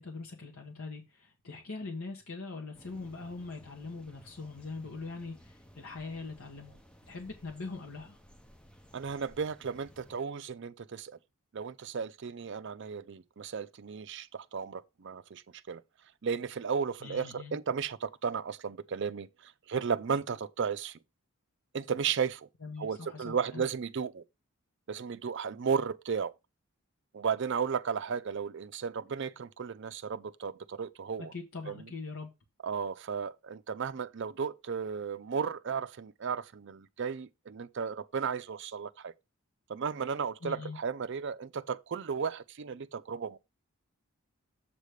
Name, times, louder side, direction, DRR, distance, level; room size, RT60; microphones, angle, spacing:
voice 1, 0.0-6.8 7.1-8.2 17.0-17.5 22.6-23.6 31.3-32.3 40.4-40.8, left 3 dB, 70° left, 1.2 m, -42 dB
sound 1, 2.7-10.2, equal, 5° left, 0.5 m, -57 dB
voice 2, 8.9-11.1 11.5-15.4 15.7-15.8 16.2-21.0 21.7-22.5 22.8-24.2 24.9-26.3 27.1-31.3 31.7-31.9 32.6-39.1 39.7-43.4, right 6 dB, 55° right, 0.5 m, -34 dB
7.4 x 3.4 x 6.4 m
head